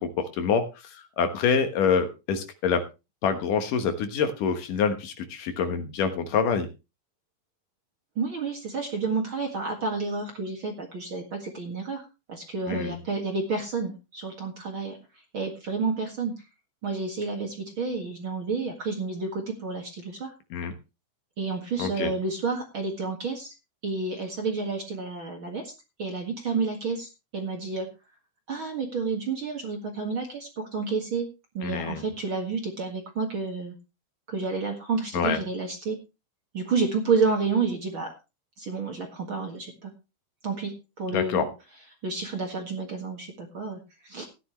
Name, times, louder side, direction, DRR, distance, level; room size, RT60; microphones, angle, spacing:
voice 1, 0.0-2.8 3.2-6.7 12.7-13.0 20.5-20.7 21.8-22.1 31.6-32.0 35.1-35.4 41.1-41.5, left 6 dB, 70° left, 8 dB, 2.7 m, -26 dB
voice 2, 8.2-15.0 15.3-16.3 16.8-20.3 21.4-23.5 23.8-25.7 26.0-27.9 28.5-31.3 31.5-33.8 34.3-36.0 36.5-38.1 38.6-39.9 40.4-41.5 42.0-44.3, right 4 dB, 45° right, 3 dB, 2.0 m, -30 dB
15.5 x 10.5 x 3.1 m, 0.27 s
omnidirectional pair, 4.2 m